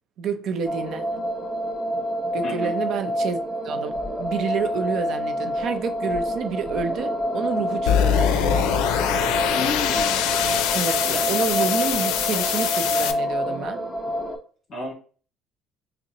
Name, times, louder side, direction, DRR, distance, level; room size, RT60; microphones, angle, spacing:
voice 1, 0.2-1.1 2.3-8.7 10.7-13.8, right 6 dB, 55° right, 0.6 m, -29 dB
sound 1, 0.7-14.4, equal, 5° left, 1.0 m, -27 dB
voice 2, 2.4-2.7 9.5-10.2 14.7-14.9, left 4 dB, 35° left, 1.7 m, -30 dB
sound 2, 7.9-13.1, left 9 dB, 80° left, 0.4 m, -23 dB
5.4 x 2.1 x 3.0 m
cardioid pair, 115°, 0 cm